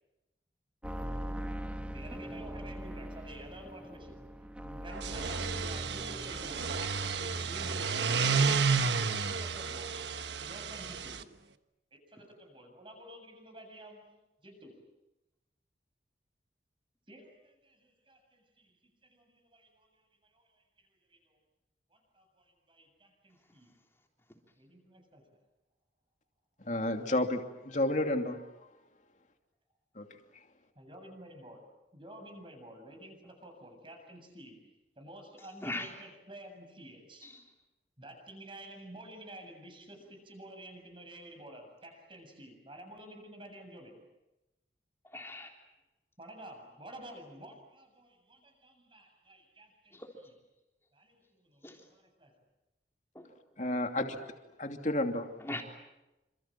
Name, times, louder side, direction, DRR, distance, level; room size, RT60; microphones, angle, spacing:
sound 1, 0.8-8.3 8.6-9.3 9.5-9.6, equal, 5° right, 1.3 m, -42 dB
voice 1, 1.9-4.1 4.6-10.0 10.4-11.3 12.1-14.1 14.4-14.7 17.1-19.9 20.2-20.6 21.1-21.4 21.9-23.7 24.6-25.4 30.8-37.3 38.0-44.1 46.2-50.0 50.9-52.3, right 1 dB, 30° right, 4 dB, 7.5 m, -51 dB
sound 2, 4.9-11.2, right 5 dB, 85° right, 1.3 m, -31 dB
voice 2, 26.6-28.5 30.0-30.1 53.6-54.2 54.6-55.3, left 1 dB, 45° left, 4 dB, 2.8 m, -31 dB
voice 3, 35.4-35.9 37.2-37.5 45.0-45.7 49.9-50.3 51.6-51.9 53.1-53.3 53.7-53.8 55.4-55.6, left 2 dB, 15° left, 2 dB, 3.5 m, -41 dB
28.5 x 27.0 x 7.7 m, 0.96 s
head